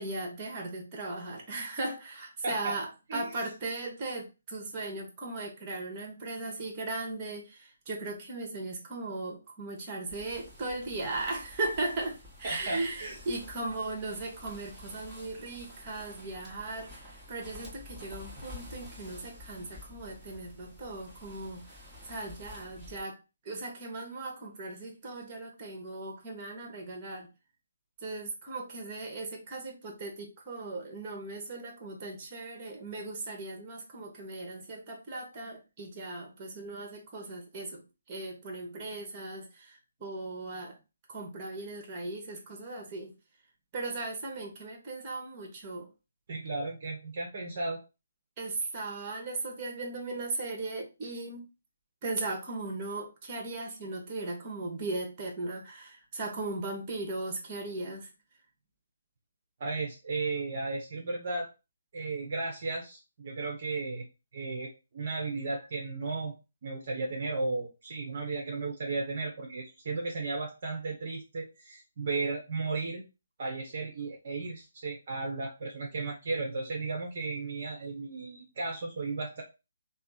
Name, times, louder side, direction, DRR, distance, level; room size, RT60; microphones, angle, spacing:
voice 1, 0.0-21.7 22.0-23.2 23.4-27.3 28.0-40.8 41.1-43.1 43.7-45.9 48.4-51.5 52.0-58.1, right 2 dB, 30° right, 2 dB, 1.1 m, -37 dB
voice 2, 2.4-2.8 3.1-3.3 12.4-13.2 46.3-47.8 59.6-61.5 61.9-64.0 64.3-66.4 66.6-73.0 73.4-79.4, right 3 dB, 45° right, 0 dB, 0.9 m, -35 dB
sound 1, 10.1-23.0, left 1 dB, 10° right, 1.2 m, -50 dB
3.4 x 2.0 x 4.1 m, 0.28 s
figure-of-eight pair, 140°, 0 cm